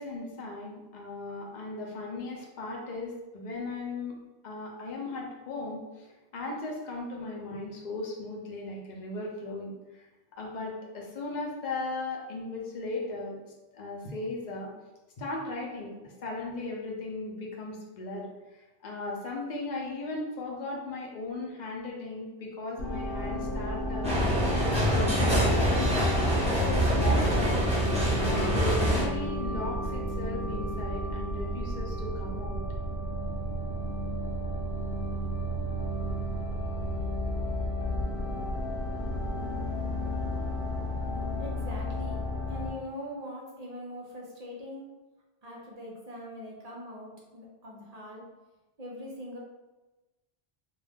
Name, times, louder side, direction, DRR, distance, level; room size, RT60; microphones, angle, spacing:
voice 1, 0.0-4.2 4.4-10.1 10.4-13.4 13.7-14.7 15.2-18.3 18.5-24.4 24.7-26.0 26.5-27.7 28.2-32.6, left 2 dB, 50° left, -1 dB, 0.7 m, -37 dB
sound 1, 22.8-42.7, equal, 65° left, 1.1 m, -32 dB
sound 2, 24.0-29.0, equal, 5° right, 0.7 m, -25 dB
voice 2, 41.4-42.2 42.5-44.9 45.4-48.2 48.8-49.4, equal, 50° right, -2 dB, 0.5 m, -42 dB
2.4 x 2.3 x 3.3 m, 1.1 s
omnidirectional pair, 1.1 m